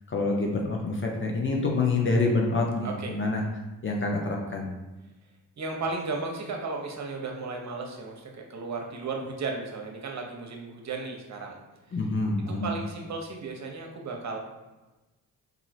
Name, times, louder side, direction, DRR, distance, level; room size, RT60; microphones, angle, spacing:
voice 1, 0.1-3.4 3.8-4.7 11.9-12.7, left 3 dB, 25° left, -1 dB, 0.7 m, -27 dB
voice 2, 2.8-3.2 5.6-11.6 11.9-12.0 12.6-14.4, right 3 dB, 35° right, 1 dB, 0.8 m, -35 dB
2.9 x 2.6 x 2.7 m, 1.1 s
hypercardioid pair, 45°, 46 cm